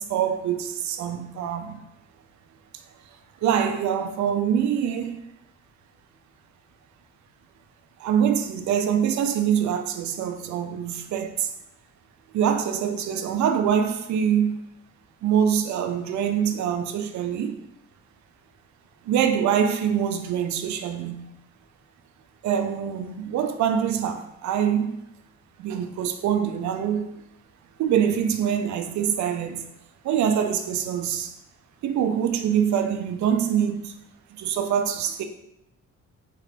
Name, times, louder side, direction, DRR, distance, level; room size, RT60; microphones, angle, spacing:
voice 1, 0.0-1.8 3.4-5.3 8.0-11.5 12.3-14.6 15.2-17.5 19.0-21.3 22.4-25.0 25.6-27.1 27.8-29.6 30.0-31.3 31.8-33.9 34.3-35.2, right 8 dB, 70° right, 0.5 m, -24 dB
4.4 x 2.4 x 3.3 m
cardioid pair, 90°, 30 cm